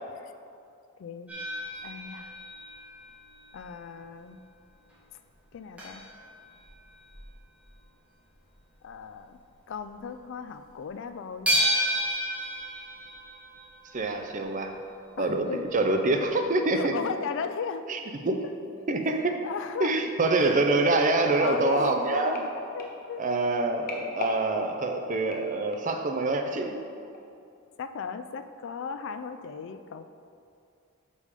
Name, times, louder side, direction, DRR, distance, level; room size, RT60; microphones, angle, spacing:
voice 1, 1.0-1.3 1.8-2.4 3.5-4.4 5.5-6.1 8.8-9.4 9.7-11.5 15.2-15.7 16.7-17.9 18.8-18.9 19.4-20.0 20.4-20.5 21.2-23.2 27.8-30.0, left 6 dB, 60° left, 10 dB, 0.3 m, -36 dB
sound 1, 1.3-3.8 4.2-4.4 4.9-5.0 5.2-5.3 5.8-7.9 8.3-8.5 8.8-8.9 9.5-9.7 10.1-10.2 11.5-14.4 15.6-15.7 16.1-16.2, equal, 5° right, 1.7 m, -32 dB
voice 2, 13.9-14.8 15.2-16.9 17.9-18.4 18.9-19.4 19.8-22.4 23.2-26.8, right 2 dB, 35° right, 5 dB, 0.5 m, -26 dB
sound 2, 21.0-26.0 26.6-26.9 27.1-27.2, left 1 dB, 45° left, 0.8 m, -40 dB
6.6 x 5.4 x 4.9 m, 2.5 s
head